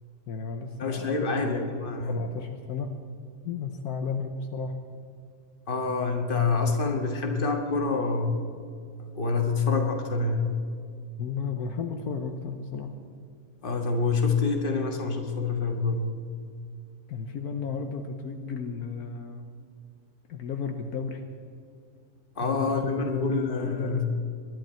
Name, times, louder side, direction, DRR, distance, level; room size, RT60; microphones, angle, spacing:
voice 1, 0.3-1.7 2.1-2.9 3.4-4.8 11.2-12.9 17.1-19.5 20.3-21.2 22.4-24.0, left 5 dB, 70° left, 5 dB, 1.4 m, -33 dB
voice 2, 0.8-2.2 5.7-8.4 9.1-10.6 13.6-16.1 22.4-24.0, left 4 dB, 35° left, 3 dB, 1.7 m, -27 dB
22.0 x 11.5 x 4.4 m, 2.4 s
omnidirectional pair, 1.7 m